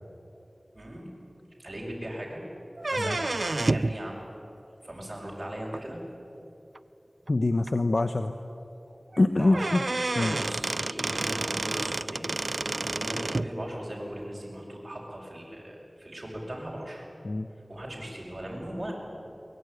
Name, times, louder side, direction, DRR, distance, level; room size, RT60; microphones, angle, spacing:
voice 1, 0.7-1.1 1.6-2.4 2.9-3.3 3.5-4.2 4.8-6.0 9.4-9.7 10.1-12.2 12.9-17.0 17.7-18.9, right 1 dB, 40° right, -6 dB, 5.7 m, -38 dB
sound 1, 2.8-4.0 5.7-5.8 6.8-6.9 7.3-7.4 7.7-7.8 9.1-9.2 9.5-13.5, right 2 dB, 60° right, 0.5 m, -29 dB
voice 2, 7.3-8.3 9.2-9.8 10.1-10.4 17.2-17.5, left 2 dB, 65° left, 8 dB, 0.9 m, -24 dB
23.0 x 21.5 x 9.3 m, 2.9 s
wide cardioid pair, 55°, 0 cm